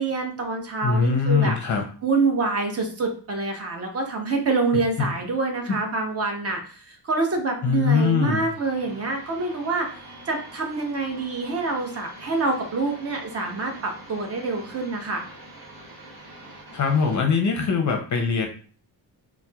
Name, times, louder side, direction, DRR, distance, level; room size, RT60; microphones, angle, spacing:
voice 1, 0.0-1.6 2.0-9.9 10.3-15.3, right 3 dB, 35° right, 2 dB, 0.8 m, -26 dB
voice 2, 0.8-1.8 5.0-5.1 7.6-8.5 16.7-18.5, left 5 dB, 45° left, 3 dB, 0.5 m, -22 dB
sound 1, 8.1-17.2, right 1 dB, 65° right, 1.2 m, -45 dB
4.1 x 2.1 x 2.2 m, 0.42 s
cardioid pair, 125°, 42 cm